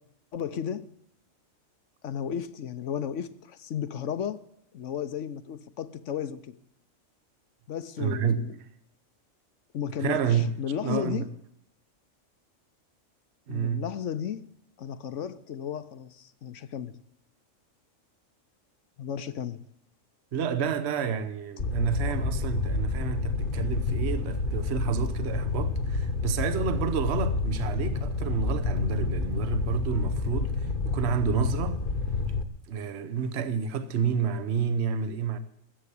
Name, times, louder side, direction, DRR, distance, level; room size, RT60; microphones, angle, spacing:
voice 1, 0.3-0.9 2.0-4.4 4.7-6.6 7.7-8.6 9.7-11.3 13.5-14.4 14.8-16.9 19.0-19.6 22.0-22.1, left 8 dB, 65° left, 1.1 m, -34 dB
voice 2, 8.0-8.4 10.0-10.5 10.8-11.3 13.5-13.8 20.3-31.8 32.7-35.4, right 7 dB, 55° right, 1.1 m, -29 dB
Fire, 21.6-32.4, left 3 dB, 45° left, 1.2 m, -29 dB
14.0 x 8.2 x 9.9 m
omnidirectional pair, 1.4 m